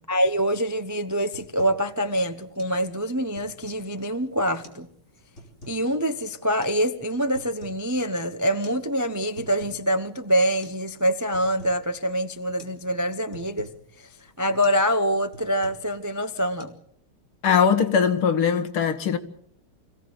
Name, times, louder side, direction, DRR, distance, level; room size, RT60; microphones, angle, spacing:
voice 1, 0.1-4.9 5.7-13.7 14.0-14.1 14.4-16.8, equal, 30° right, 0.3 m, -25 dB
sound 1, 0.6-0.8 1.1-1.8 2.2-2.3 2.6-2.8 3.1-3.9 4.5-4.9 5.1-5.8 6.6-6.8 7.1-7.9 8.1-8.2 8.6-8.8 9.1-9.9 10.2-10.3 10.6-10.8 11.1-11.8 12.2-12.3 12.6-12.8 13.1-13.8 14.2-14.3 14.6-14.9 15.1-15.9 16.3-16.6, equal, 35° left, 3.6 m, -47 dB
voice 2, 17.4-19.2, left 7 dB, 90° left, 2.4 m, -20 dB
25.5 x 17.0 x 8.0 m
omnidirectional pair, 2.3 m